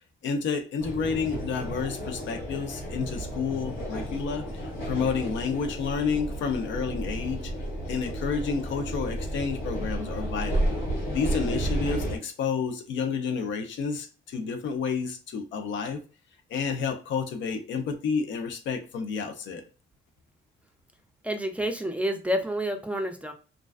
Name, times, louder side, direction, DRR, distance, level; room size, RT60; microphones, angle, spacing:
voice 1, 0.2-7.5 7.9-10.7 11.1-16.0 16.5-19.6, left 5 dB, 70° left, 0.5 m, -30 dB
sound 1, 0.8-12.2, right 1 dB, 90° left, 1.0 m, -32 dB
voice 2, 21.2-23.3, equal, 5° right, 0.4 m, -29 dB
2.4 x 2.2 x 2.3 m
cardioid pair, 90°, 20 cm